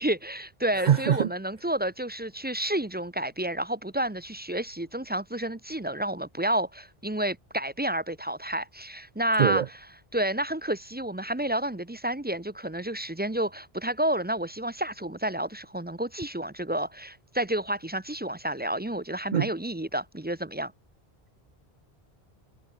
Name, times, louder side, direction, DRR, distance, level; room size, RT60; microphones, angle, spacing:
voice 1, 0.0-9.8 10.1-20.7, right 1 dB, 10° right, 0.7 m, -30 dB
voice 2, 0.9-1.3 9.4-9.6 19.3-19.5, right 9 dB, 50° right, 0.6 m, -22 dB
omnidirectional pair, 1.1 m